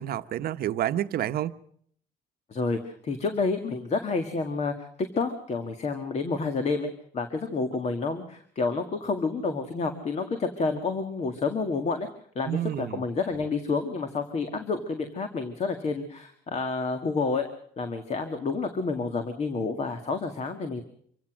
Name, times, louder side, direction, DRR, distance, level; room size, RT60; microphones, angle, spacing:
voice 1, 0.0-1.6 12.5-13.0, right 12 dB, 65° right, 1.0 m, -29 dB
voice 2, 2.5-4.9 5.2-12.1 12.4-17.5 17.8-20.8, left 4 dB, 40° left, 2.0 m, -29 dB
25.5 x 16.0 x 6.3 m
cardioid pair, 110°, 17 cm